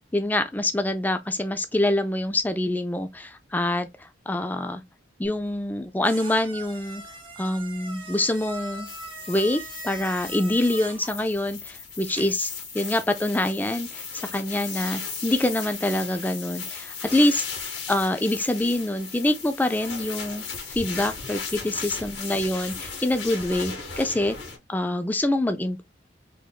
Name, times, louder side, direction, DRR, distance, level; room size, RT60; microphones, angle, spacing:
voice 1, 0.1-4.8 5.2-7.0 7.4-8.9 9.3-17.4 17.9-24.4 24.7-25.8, left 1 dB, 10° left, 0.4 m, -25 dB
sound 1, 5.2-12.5, right 2 dB, 30° right, 0.8 m, -42 dB
sound 2, 8.8-24.6, left 5 dB, 80° left, 1.6 m, -36 dB
3.4 x 3.0 x 2.3 m
head